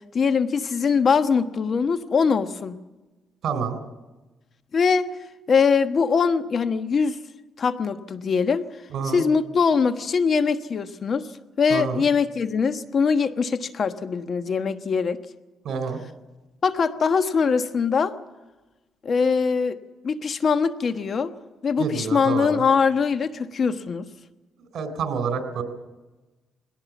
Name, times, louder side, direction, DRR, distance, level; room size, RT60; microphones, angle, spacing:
voice 1, 0.1-2.8 4.7-5.1 5.5-7.2 7.6-8.6 9.0-11.3 11.6-15.2 16.6-18.1 19.0-19.8 20.0-21.3 21.6-24.1, left 5 dB, 50° left, 10 dB, 1.2 m, -22 dB
voice 2, 3.4-3.8 8.9-9.2 11.7-12.0 15.6-16.0 21.8-22.6 24.6-25.6, right 6 dB, 65° right, 8 dB, 3.7 m, -28 dB
21.0 x 17.5 x 7.3 m, 1.1 s
cardioid pair, 90°, 0 cm